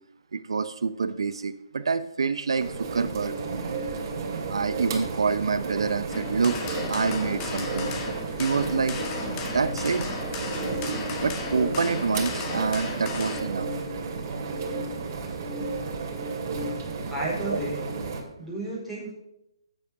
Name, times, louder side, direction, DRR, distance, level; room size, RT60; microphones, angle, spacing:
voice 1, 0.3-3.3 4.5-7.9 8.4-9.0 9.5-10.1 11.2-13.7, right 5 dB, 70° right, 12 dB, 0.7 m, -27 dB
sound 1, 2.6-18.2, right 4 dB, 40° right, 2.4 m, -32 dB
sound 2, 6.1-13.4, left 4 dB, 25° left, 1.8 m, -35 dB
voice 2, 16.9-17.8 18.4-19.1, right 2 dB, ahead, -6 dB, 4.7 m, -32 dB
12.0 x 7.7 x 5.9 m, 0.87 s
figure-of-eight pair, 145°, 3 cm